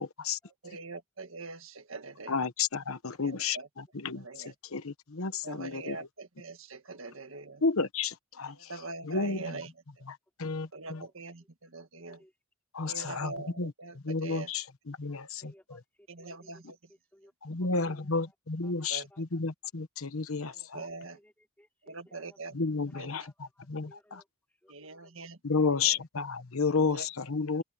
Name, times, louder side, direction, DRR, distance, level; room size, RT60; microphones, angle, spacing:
voice 1, 0.0-0.4 2.3-6.0 7.6-8.7 9.0-9.6 10.1-11.1 12.7-13.7 14.0-15.5 17.4-20.9 22.5-24.2 25.4-27.6, left 4 dB, 75° left, 1.1 m, -32 dB
voice 2, 0.6-2.4 3.2-3.7 4.1-4.5 5.4-7.6 8.5-9.7 10.7-12.2 12.9-14.5 16.1-16.8 18.9-19.1 20.3-21.2 21.9-22.5 22.9-23.1 24.7-25.4 25.8-25.9 26.9-27.1, right 3 dB, 65° right, 1.7 m, -43 dB
voice 3, 10.8-11.1 12.1-12.3 15.1-17.3 17.6-18.3 18.6-19.2 21.1-22.5 22.9-24.3 24.6-25.3, equal, 5° left, 4.5 m, -62 dB
head